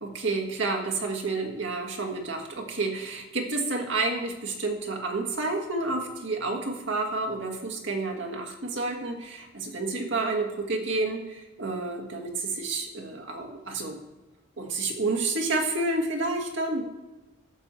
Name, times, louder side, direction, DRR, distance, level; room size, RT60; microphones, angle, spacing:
voice 1, 0.0-14.0 14.6-16.9, right 3 dB, 75° right, 2 dB, 1.6 m, -30 dB
11.5 x 6.9 x 4.4 m, 1.1 s
head